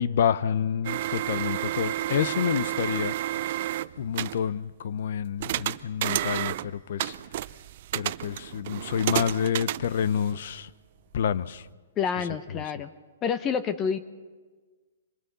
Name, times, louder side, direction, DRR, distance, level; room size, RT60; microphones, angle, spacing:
voice 1, 0.0-3.1 4.0-7.1 7.9-10.7 11.1-11.6, left 8 dB, 65° left, 0.8 m, -28 dB
sound 1, 0.8-4.4 5.4-6.7 7.0-10.5, right 14 dB, 55° right, 0.7 m, -31 dB
voice 2, 12.0-12.9 13.2-14.0, left 7 dB, 25° left, 1.1 m, -28 dB
25.5 x 20.5 x 6.9 m
hypercardioid pair, 135°, 0 cm